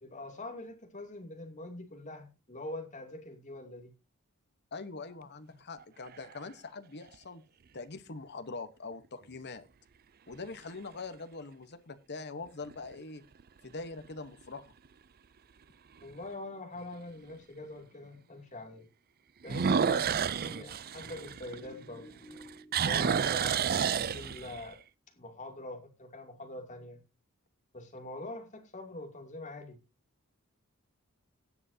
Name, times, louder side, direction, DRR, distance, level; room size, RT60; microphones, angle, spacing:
voice 1, 0.0-3.9 16.0-18.9 19.4-24.8 25.1-27.0 27.7-29.8, left 2 dB, 35° left, 2.7 m, -44 dB
voice 2, 4.7-7.4 7.7-9.6 10.3-13.2 13.6-14.7, left 3 dB, 50° left, 1.2 m, -43 dB
sound 1, 5.8-6.5 7.1-7.2 12.5-12.9 13.4-13.5 14.0-14.1 14.4-14.5 16.0-16.1 19.4-22.0 22.3-24.7, right 7 dB, 45° right, 0.5 m, -30 dB
18.0 x 7.9 x 2.8 m
head